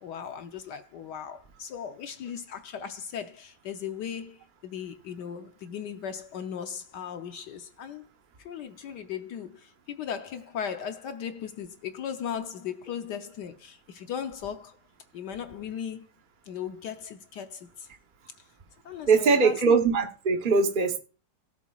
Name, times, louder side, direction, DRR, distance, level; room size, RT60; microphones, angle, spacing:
voice 1, 0.0-8.0 8.4-14.7 15.1-16.1 16.5-17.9 18.8-19.6, left 8 dB, 70° left, 1.1 m, -37 dB
voice 2, 19.1-21.0, right 4 dB, 50° right, 0.5 m, -21 dB
17.0 x 7.1 x 2.3 m
omnidirectional pair, 2.3 m